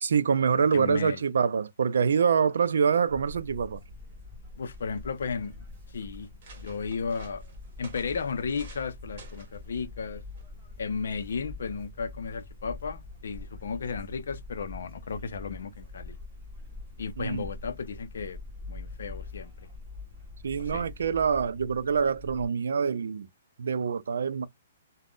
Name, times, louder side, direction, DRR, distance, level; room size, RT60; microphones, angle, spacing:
voice 1, 0.0-3.8 17.2-17.5 20.4-23.3 23.6-24.5, right 6 dB, 75° right, 0.3 m, -25 dB
voice 2, 0.7-1.2 4.6-5.5 5.9-6.3 6.6-7.4 7.8-10.2 10.8-16.2 17.0-18.4 18.7-19.5 20.6-20.9, left 5 dB, 70° left, 0.5 m, -34 dB
sound 1, 3.1-22.5, left 3 dB, 15° right, 1.1 m, -44 dB
sound 2, 4.3-4.4 4.6-5.2 5.8-5.9 6.2-8.9 9.2-9.6 10.4-10.6, right 4 dB, 35° right, 1.0 m, -52 dB
2.4 x 2.1 x 3.5 m
hypercardioid pair, 175°, 0 cm